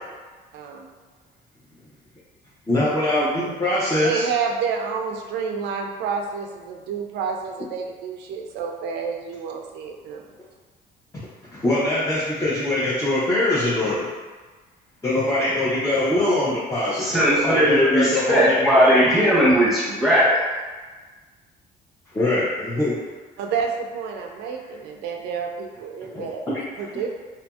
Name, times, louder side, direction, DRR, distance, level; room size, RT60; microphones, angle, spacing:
voice 1, 0.5-0.9 4.0-10.3 23.4-26.5 26.8-27.1, right 6 dB, 80° right, 2 dB, 0.4 m, -29 dB
voice 2, 2.7-4.2 11.5-14.1 15.0-19.2 22.1-22.9 26.1-26.6, left 1 dB, 15° left, -9 dB, 0.6 m, -23 dB
voice 3, 17.0-20.3, equal, ahead, -8 dB, 1.0 m, -18 dB
2.8 x 2.5 x 2.3 m, 1.3 s
cardioid pair, 110°, 17 cm